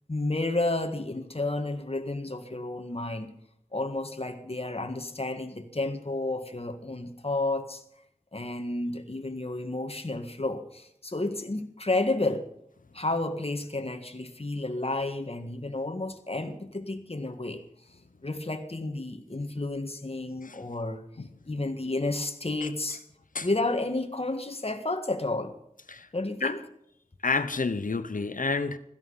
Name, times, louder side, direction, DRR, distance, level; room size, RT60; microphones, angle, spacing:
voice 1, 0.1-3.3 3.7-7.8 8.3-12.5 12.9-17.6 18.2-21.0 21.5-23.0 23.4-25.5 26.1-26.6, left 2 dB, 45° left, 1.7 m, -31 dB
voice 2, 27.2-28.8, left 4 dB, 80° left, 0.9 m, -29 dB
16.5 x 13.5 x 5.6 m
wide cardioid pair, 45°, 14 cm